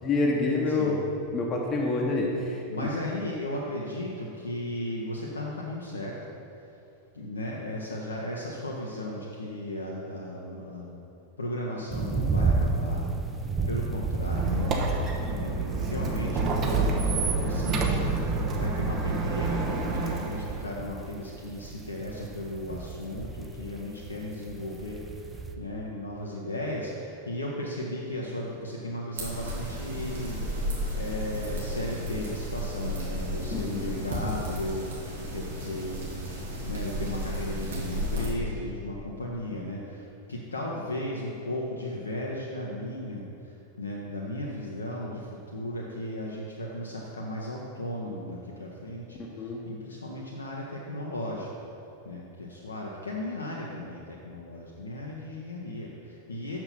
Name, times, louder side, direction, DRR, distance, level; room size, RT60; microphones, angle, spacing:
voice 1, 0.0-2.6 33.5-34.0 49.4-49.6, left 3 dB, 25° left, -1 dB, 1.0 m, -27 dB
voice 2, 0.7-1.0 2.7-6.2 7.1-11.0 11.4-14.9 15.2-17.9 18.5-30.4 30.9-36.2 36.7-51.5 52.0-56.6, left 1 dB, 75° left, -3 dB, 0.8 m, -36 dB
sound 1, 11.9-25.6, right 3 dB, 15° right, 0.5 m, -33 dB
Squeak, 14.2-20.6, right 3 dB, 30° right, 1.0 m, -28 dB
sound 2, 29.1-38.3, equal, 65° right, 2.1 m, -33 dB
6.7 x 6.0 x 5.9 m, 2.8 s
figure-of-eight pair, 90°, 0 cm